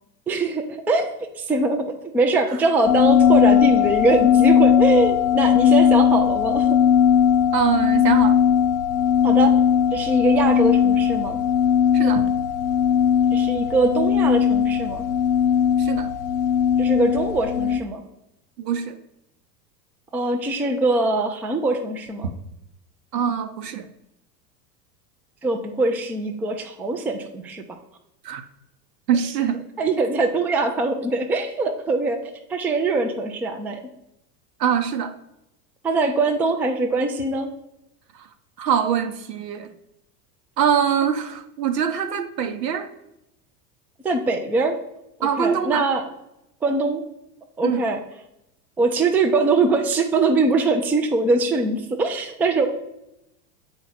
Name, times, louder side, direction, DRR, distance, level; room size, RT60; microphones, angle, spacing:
voice 1, 0.3-6.8 9.2-9.5 9.9-11.4 13.3-15.1 16.8-18.0 20.1-22.3 25.4-27.6 29.8-33.8 35.8-37.5 44.0-44.7 45.2-46.0 46.6-47.1 47.6-48.0 48.8-52.7, right 3 dB, 5° right, 0.4 m, -22 dB
sound 1, 2.8-17.8, left 8 dB, 45° left, 0.7 m, -18 dB
voice 2, 7.5-8.4 11.9-12.3 15.8-16.1 18.6-19.0 23.1-23.9 28.2-28.4 29.1-29.6 34.6-35.1 38.2-38.3 38.6-39.7 40.6-42.9 45.2-45.8 47.6-47.9, right 8 dB, 75° right, 0.9 m, -23 dB
8.0 x 4.6 x 4.0 m
hypercardioid pair, 85°, 49 cm